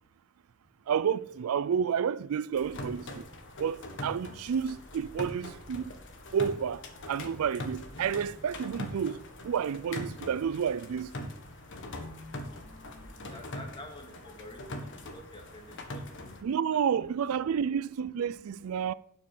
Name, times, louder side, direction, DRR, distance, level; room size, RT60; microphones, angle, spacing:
voice 1, 0.9-3.2 3.6-5.8 6.3-6.8 7.1-11.3 16.4-18.9, right 7 dB, 80° right, 0.4 m, -30 dB
sound 1, 2.5-16.4, left 1 dB, 60° left, 1.5 m, -42 dB
voice 2, 12.3-17.8, left 1 dB, 25° left, 2.0 m, -51 dB
12.0 x 6.3 x 5.4 m
head